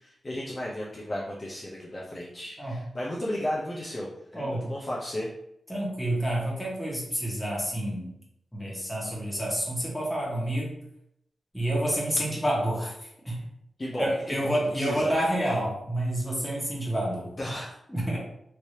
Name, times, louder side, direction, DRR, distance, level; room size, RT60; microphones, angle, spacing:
voice 1, 0.0-5.3 13.8-15.2 17.4-17.8, left 1 dB, 35° left, -5 dB, 0.7 m, -34 dB
voice 2, 4.3-4.7 5.7-8.1 8.5-10.8 11.5-12.9 13.2-13.5 13.9-17.3 17.9-18.2, right 1 dB, 5° left, -4 dB, 1.4 m, -28 dB
3.3 x 2.9 x 2.8 m, 0.76 s
cardioid pair, 75°, 0 cm